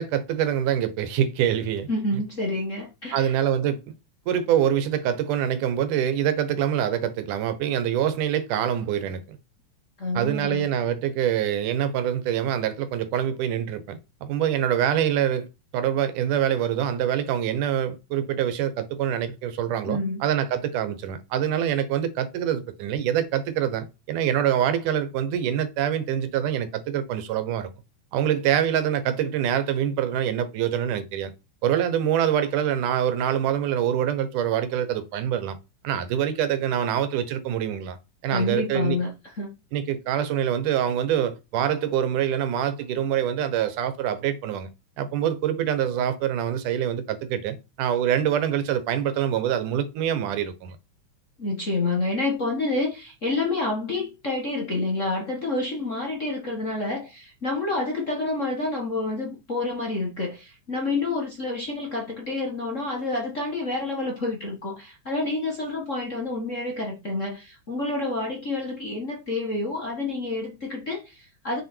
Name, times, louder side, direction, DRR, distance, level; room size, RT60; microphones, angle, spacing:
voice 1, 0.0-1.9 3.1-3.8 4.3-9.4 10.1-15.5 15.7-27.7 28.1-31.3 31.6-35.6 35.8-38.0 38.2-39.0 39.7-44.7 45.0-50.8, right 10 dB, 90° right, 2.6 m, -25 dB
voice 2, 1.9-3.3 10.0-10.7 19.9-20.2 38.3-39.1 39.4-39.5 51.4-71.6, left 2 dB, 35° left, 1.4 m, -28 dB
7.7 x 6.7 x 4.5 m
omnidirectional pair, 3.5 m